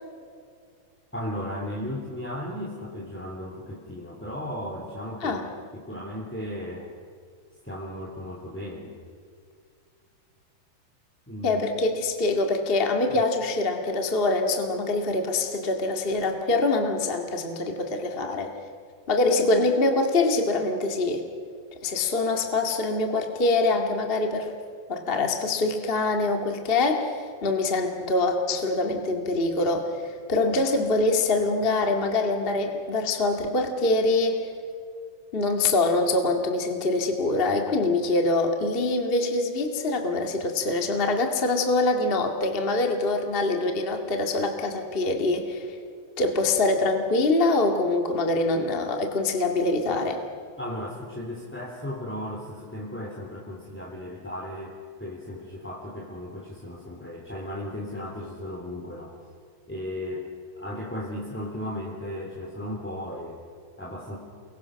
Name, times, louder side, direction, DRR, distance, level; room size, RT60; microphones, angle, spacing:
voice 1, 1.1-5.4 5.7-6.9 7.6-8.9 11.3-11.6 13.1-13.2 50.6-59.1 59.7-60.3 60.6-63.4 63.8-64.2, left 1 dB, 5° left, -3 dB, 2.7 m, -35 dB
voice 2, 11.4-18.5 19.1-21.2 21.8-24.5 24.9-27.1 27.4-34.4 35.3-45.8 46.2-50.2, left 2 dB, 20° left, 3 dB, 1.6 m, -24 dB
29.5 x 23.0 x 6.4 m, 2.2 s
omnidirectional pair, 4.2 m